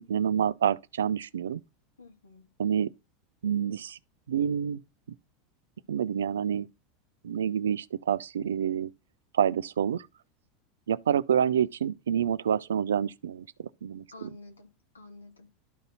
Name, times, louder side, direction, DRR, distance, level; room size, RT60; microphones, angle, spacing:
voice 1, 0.0-1.6 2.6-2.9 3.4-4.0 4.3-4.8 5.9-6.7 7.2-8.9 9.3-10.1 10.9-14.3, right 8 dB, 75° right, 0.4 m, -28 dB
voice 2, 2.0-2.5 14.1-15.5, left 2 dB, 85° left, 1.7 m, -50 dB
12.0 x 4.0 x 4.1 m
figure-of-eight pair, 80°, 0 cm